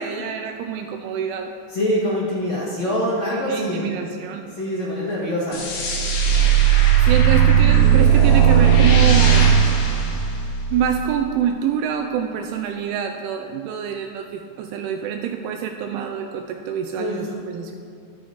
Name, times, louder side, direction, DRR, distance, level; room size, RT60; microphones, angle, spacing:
voice 1, 0.0-1.5 3.5-4.5 7.0-9.5 10.7-17.8, right 8 dB, 85° right, 5 dB, 2.8 m, -26 dB
voice 2, 1.7-3.9 4.5-5.6 16.9-17.2, equal, 45° left, -8 dB, 2.4 m, -24 dB
sound 1, 5.5-10.9, right 8 dB, 65° left, 4.5 m, -16 dB
23.5 x 10.0 x 3.1 m, 2.5 s
omnidirectional pair, 5.9 m